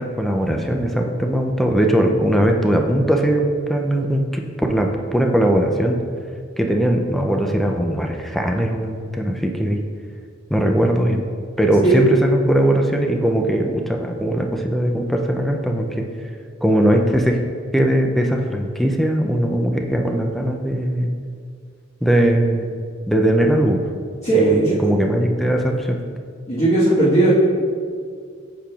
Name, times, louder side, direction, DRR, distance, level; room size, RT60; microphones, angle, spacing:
voice 1, 0.0-6.0 6.6-9.8 10.5-11.2 11.6-16.1 16.6-17.4 17.7-21.1 22.0-22.7 23.1-23.8 24.3-26.0, right 1 dB, ahead, 2 dB, 0.4 m, -19 dB
voice 2, 24.2-24.7 26.5-27.3, right 2 dB, 30° left, -12 dB, 1.3 m, -16 dB
8.4 x 5.9 x 2.3 m, 2.1 s
head